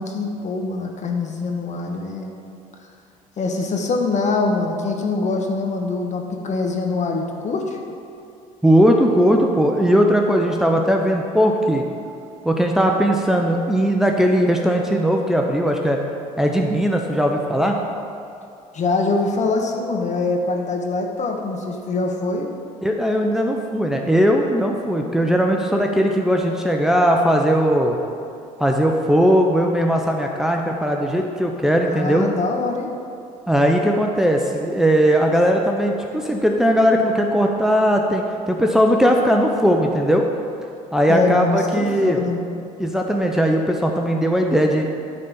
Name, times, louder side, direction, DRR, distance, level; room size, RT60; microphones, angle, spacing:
voice 1, 0.0-2.3 3.4-7.8 18.7-22.5 31.8-32.9 41.1-42.4, left 3 dB, 40° left, 2 dB, 1.3 m, -24 dB
voice 2, 8.6-11.8 12.4-16.0 16.4-17.8 22.8-28.0 28.6-32.3 33.5-40.2 40.9-42.2 42.8-44.9, equal, 5° right, 1 dB, 0.7 m, -18 dB
9.5 x 4.2 x 7.0 m, 2.5 s
hypercardioid pair, 70°, 18 cm